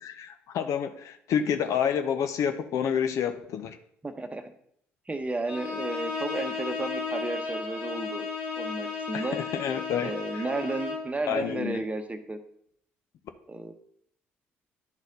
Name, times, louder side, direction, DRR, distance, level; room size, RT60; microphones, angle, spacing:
voice 1, 0.0-3.8 9.1-10.4 11.3-11.8, left 8 dB, 60° left, 8 dB, 0.6 m, -29 dB
voice 2, 4.0-4.5 5.1-8.3 8.6-9.4 10.0-12.4 13.5-13.7, right 2 dB, 20° right, 8 dB, 0.9 m, -33 dB
Bowed string instrument, 5.5-11.1, left 4 dB, 85° left, 2.5 m, -34 dB
10.5 x 4.1 x 3.9 m, 0.68 s
hypercardioid pair, 50°, 6 cm